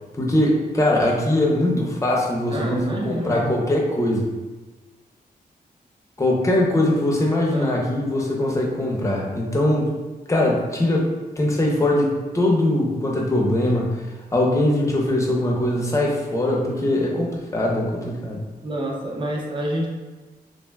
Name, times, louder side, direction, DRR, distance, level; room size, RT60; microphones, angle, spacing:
voice 1, 0.2-4.3 6.2-9.9 10.3-11.1 11.4-14.0 14.3-18.4, left 1 dB, 20° left, -2 dB, 0.6 m, -21 dB
voice 2, 1.5-1.9 2.5-3.6 7.5-7.8 18.6-19.9, right 1 dB, 30° right, -1 dB, 0.5 m, -28 dB
3.2 x 2.5 x 2.2 m, 1.3 s
wide cardioid pair, 115°, 16 cm